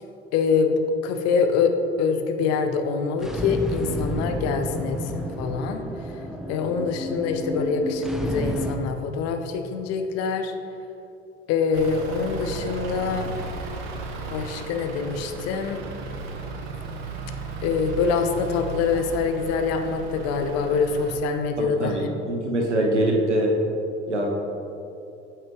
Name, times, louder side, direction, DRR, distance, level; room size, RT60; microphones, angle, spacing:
voice 1, 0.3-5.9 6.5-10.5 11.5-13.3 14.3-15.8 17.6-22.1, left 5 dB, 45° left, 6 dB, 0.7 m, -25 dB
sound 1, 3.2-8.8, equal, ahead, 0.4 m, -31 dB
Truck / Idling, 11.7-21.2, right 3 dB, 60° right, 0.9 m, -35 dB
voice 2, 21.6-23.5 24.1-24.3, right 1 dB, 85° right, 0 dB, 0.9 m, -23 dB
8.8 x 5.5 x 3.1 m, 2.7 s
figure-of-eight pair, 60°, 34 cm